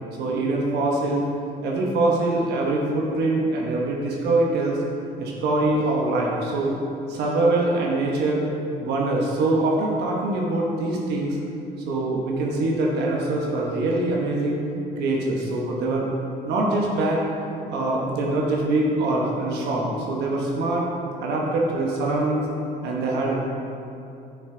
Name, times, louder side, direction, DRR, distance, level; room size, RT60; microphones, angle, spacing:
voice 1, 0.2-1.2 1.6-4.8 5.2-6.7 7.1-8.4 8.8-11.4 11.9-14.6 15.0-16.1 16.4-17.2 17.7-20.8 21.2-22.5 22.8-23.4, right 2 dB, 80° right, -2 dB, 1.1 m, -23 dB
7.0 x 6.2 x 3.8 m, 2.7 s
cardioid pair, 110°, 17 cm